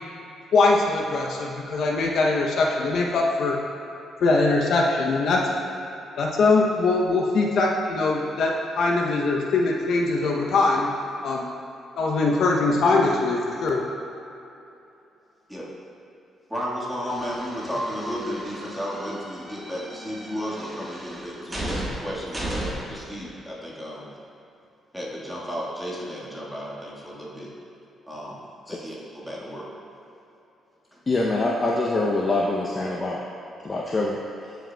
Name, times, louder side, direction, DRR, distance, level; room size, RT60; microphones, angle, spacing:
voice 1, 0.5-3.5 4.2-5.4 6.2-10.9 11.2-11.4 12.0-13.8, left 3 dB, 70° left, -1 dB, 0.6 m, -22 dB
voice 2, 16.5-24.1 24.9-27.5 28.1-28.4 28.7-29.7, equal, ahead, -6 dB, 1.5 m, -33 dB
sound 1, 17.1-23.0, right 1 dB, 20° right, 1.3 m, -36 dB
voice 3, 31.1-33.2 33.6-34.2, left 2 dB, 30° left, -3 dB, 0.6 m, -24 dB
10.0 x 5.0 x 2.2 m, 2.8 s
cardioid pair, 90°, 0 cm